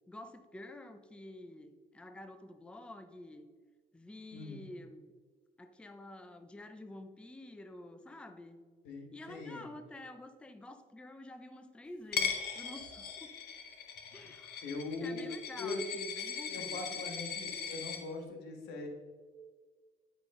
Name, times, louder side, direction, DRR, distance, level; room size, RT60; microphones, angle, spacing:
voice 1, 0.1-3.5 3.9-5.1 5.6-8.6 9.1-13.3 14.1-17.1, left 1 dB, 5° left, 9 dB, 0.5 m, -49 dB
voice 2, 8.8-9.6 14.6-15.3 15.6-15.8 16.5-18.9, left 3 dB, 85° left, 2 dB, 1.5 m, -41 dB
Coin (dropping), 12.1-18.0, left 7 dB, 65° left, 1.0 m, -39 dB
9.5 x 5.0 x 3.7 m, 1.5 s
cardioid pair, 110°, 17 cm